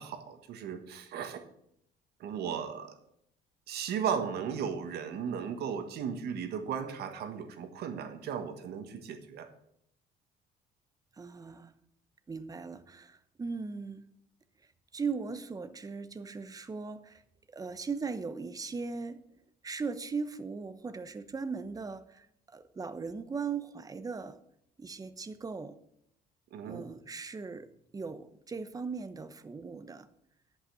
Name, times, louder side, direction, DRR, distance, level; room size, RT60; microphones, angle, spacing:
voice 1, 0.0-1.4 2.2-2.9 3.7-9.5 26.5-26.8, right 7 dB, 75° right, 8 dB, 1.6 m, -36 dB
voice 2, 11.2-11.7 12.3-14.0 14.9-17.2 17.5-19.2 19.6-24.4 24.8-25.8 26.6-27.7 27.9-30.1, right 5 dB, 20° right, 12 dB, 0.9 m, -38 dB
10.5 x 5.6 x 8.4 m, 0.73 s
cardioid pair, 110°, 17 cm